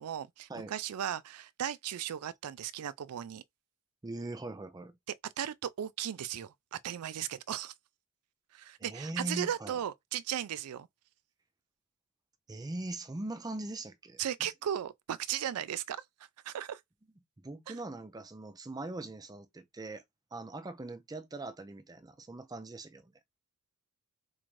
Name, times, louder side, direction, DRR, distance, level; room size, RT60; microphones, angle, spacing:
voice 1, 0.0-3.4 5.4-7.7 8.5-10.9 14.2-16.0 16.4-16.8 17.7-17.8, right 10 dB, 85° right, 0.4 m, -36 dB
voice 2, 4.0-4.9 8.8-9.8 12.5-14.2 17.4-20.0 20.3-23.1, right 2 dB, 15° right, 0.4 m, -41 dB
4.1 x 2.5 x 3.1 m
head